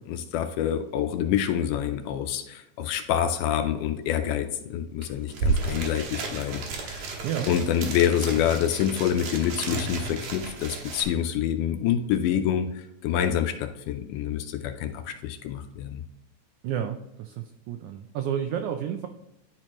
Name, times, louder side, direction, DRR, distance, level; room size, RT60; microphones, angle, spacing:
voice 1, 0.1-7.1 7.5-16.0, left 9 dB, 80° left, 6 dB, 1.9 m, -27 dB
sound 1, 5.0-5.1 5.3-11.0, right 3 dB, 70° right, 2.4 m, -32 dB
voice 2, 16.6-19.1, right 9 dB, 85° right, 6 dB, 1.7 m, -31 dB
10.5 x 4.4 x 2.9 m, 0.89 s
omnidirectional pair, 3.9 m